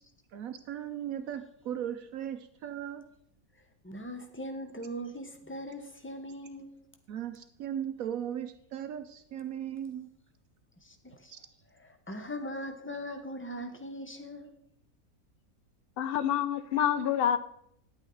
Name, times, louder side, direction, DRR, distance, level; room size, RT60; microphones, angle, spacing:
voice 1, 0.3-3.0 7.1-10.1 11.3-11.4, right 10 dB, 70° right, 1.0 m, -37 dB
voice 2, 3.8-6.8 10.8-11.3 11.8-14.5, equal, 10° left, 0.7 m, -40 dB
voice 3, 16.0-17.4, left 9 dB, 75° left, 0.5 m, -27 dB
10.0 x 8.8 x 3.9 m
omnidirectional pair, 1.6 m